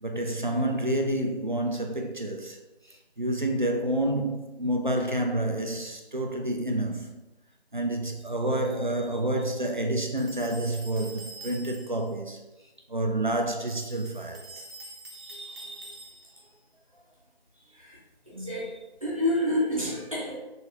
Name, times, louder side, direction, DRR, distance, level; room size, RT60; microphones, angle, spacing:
voice 1, 0.0-2.6 2.9-7.2 7.7-12.4 12.9-14.6 15.1-16.0, right 1 dB, 50° right, 0.4 m, -29 dB
sound 1, 10.2-12.1 13.6-16.5, right 2 dB, 70° right, 0.8 m, -46 dB
voice 2, 18.3-18.7 19.0-20.4, left 1 dB, 35° right, 0.9 m, -28 dB
3.2 x 2.8 x 2.8 m
figure-of-eight pair, 175°, 32 cm